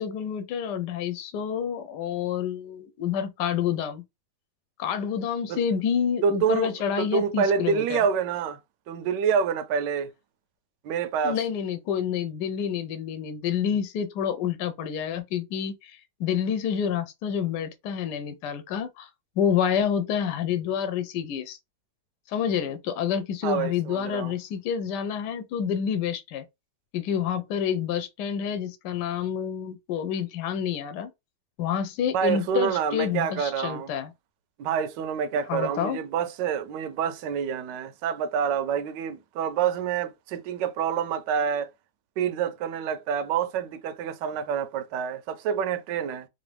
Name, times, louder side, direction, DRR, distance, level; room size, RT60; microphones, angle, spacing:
voice 1, 0.0-4.0 4.8-8.0 11.2-19.1 19.4-21.6 22.3-26.4 26.9-31.1 31.6-34.1 35.5-36.0, left 8 dB, 75° left, 1.2 m, -28 dB
voice 2, 6.2-8.6 8.9-10.1 10.8-11.4 23.4-24.3 32.1-33.9 34.6-41.7 42.2-46.3, right 7 dB, 80° right, 1.2 m, -27 dB
3.2 x 2.6 x 3.2 m
omnidirectional pair, 1.9 m